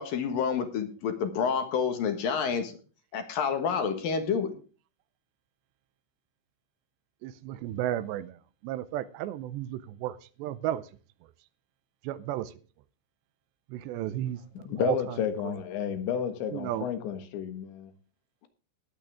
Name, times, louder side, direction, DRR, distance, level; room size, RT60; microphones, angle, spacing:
voice 1, 0.0-2.7 3.1-4.5, left 6 dB, 60° left, 2.9 m, -28 dB
voice 2, 7.2-8.4 8.6-10.8 12.1-12.5 13.7-14.4 14.8-15.0 16.5-16.9, right 12 dB, 80° right, 2.8 m, -33 dB
voice 3, 14.5-17.9, left 8 dB, 85° left, 3.9 m, -31 dB
19.5 x 8.9 x 3.5 m
omnidirectional pair, 5.1 m